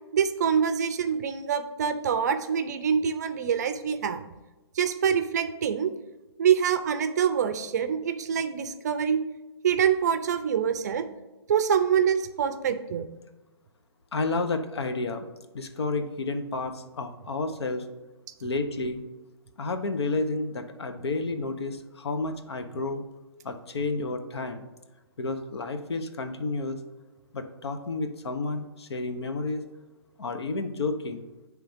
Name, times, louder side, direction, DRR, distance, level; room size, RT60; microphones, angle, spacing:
voice 1, 0.1-4.2 4.7-5.9 6.4-9.2 9.6-11.1 11.5-13.0, right 7 dB, 40° right, 10 dB, 0.5 m, -25 dB
voice 2, 14.1-15.3 15.5-17.9 18.4-19.0 19.6-23.0 23.4-24.6 25.2-26.8 27.3-29.6 30.2-31.2, left 3 dB, 70° left, 7 dB, 0.9 m, -31 dB
9.1 x 3.3 x 5.0 m, 1.1 s
hypercardioid pair, 160°, 14 cm